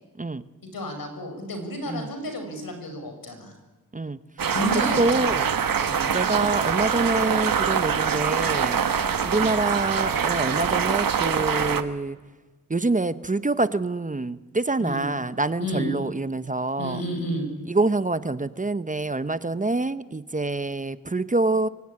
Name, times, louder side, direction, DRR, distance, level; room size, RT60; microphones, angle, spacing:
voice 1, 0.6-3.5 4.5-5.3 5.8-6.1 14.8-15.1 15.6-15.9 16.8-17.5, equal, 80° left, 6 dB, 5.7 m, -31 dB
sound 1, 4.4-11.8, right 7 dB, 75° right, 1.4 m, -24 dB
voice 2, 4.7-5.5 6.1-8.8 9.2-12.2 12.7-17.0 17.7-21.7, right 2 dB, 25° right, 13 dB, 0.9 m, -26 dB
25.5 x 23.0 x 9.7 m, 1.3 s
wide cardioid pair, 95°, 34 cm